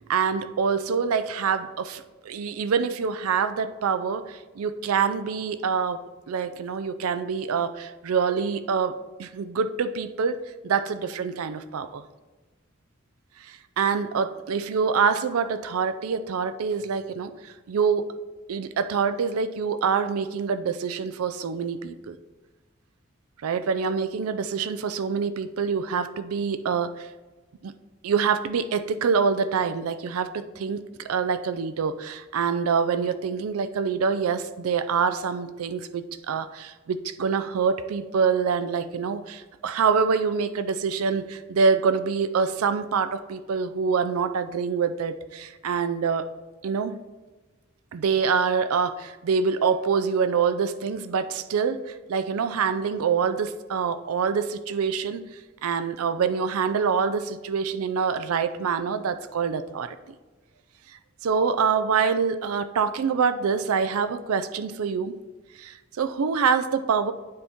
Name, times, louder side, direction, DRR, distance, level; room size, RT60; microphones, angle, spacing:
voice 1, 0.1-12.0 13.4-18.1 18.5-22.2 23.4-27.1 27.6-27.7 28.0-46.3 46.6-47.0 47.9-55.2 55.6-60.0 61.2-65.2 65.6-67.1, right 6 dB, 85° right, 12 dB, 0.4 m, -26 dB
9.5 x 4.2 x 3.6 m, 1.2 s
head